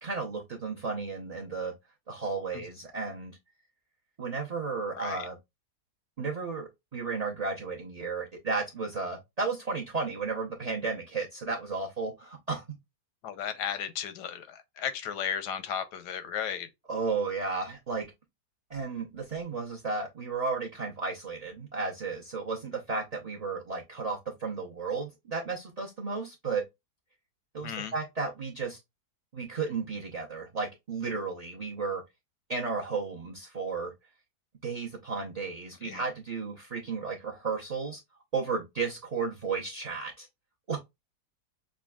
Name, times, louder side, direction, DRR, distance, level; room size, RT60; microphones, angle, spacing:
voice 1, 0.0-1.7 2.1-3.4 4.2-5.4 6.2-12.6 16.9-18.1 18.7-26.6 27.5-28.8 29.3-32.0 32.5-33.9 34.6-38.0 38.3-40.3 40.7-40.8, right 4 dB, 50° right, 0.4 m, -33 dB
voice 2, 13.2-16.7 27.6-27.9 35.8-36.0, left 8 dB, 85° left, 1.3 m, -35 dB
6.1 x 2.2 x 2.3 m
omnidirectional pair, 1.7 m